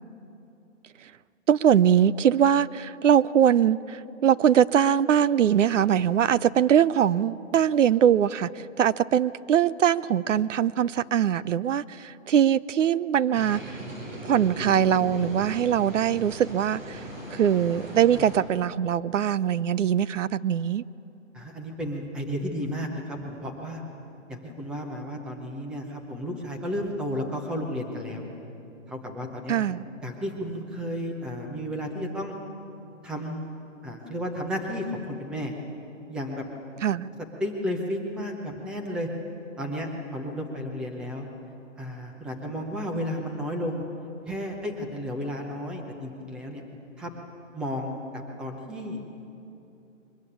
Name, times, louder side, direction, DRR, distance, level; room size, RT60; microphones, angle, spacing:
voice 1, 1.5-13.8 14.2-17.0 17.3-20.8 29.5-29.8 36.8-37.1, right 9 dB, 70° right, 18 dB, 0.7 m, -22 dB
sound 1, 13.3-18.4, right 1 dB, 40° right, 5.7 m, -38 dB
voice 2, 21.3-23.8 24.3-28.3 28.9-29.6 30.0-32.4 33.0-33.5 33.8-35.5 36.1-36.4 37.4-39.1 39.6-41.3 41.8-43.8 44.3-46.6 47.0-47.1 47.5-49.0, equal, ahead, 1 dB, 0.7 m, -33 dB
23.0 x 20.0 x 8.6 m, 2.9 s
hypercardioid pair, 165°, 38 cm